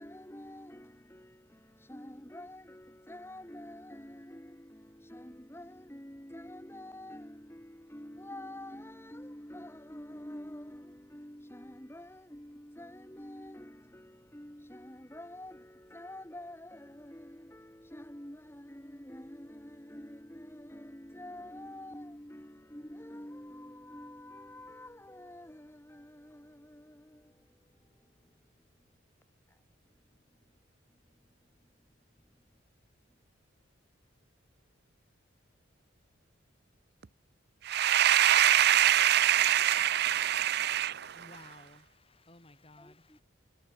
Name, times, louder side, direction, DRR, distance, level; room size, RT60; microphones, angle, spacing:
voice 1, 0.0-28.4 28.8-28.9 29.5-29.6 30.9-31.0 31.6-31.7 42.8-43.2, left 1 dB, 10° left, 2.3 m, -48 dB
voice 2, 37.6-41.2, right 11 dB, 50° right, 0.6 m, -24 dB
voice 3, 40.8-43.2, left 2 dB, 30° left, 8.0 m, -56 dB
head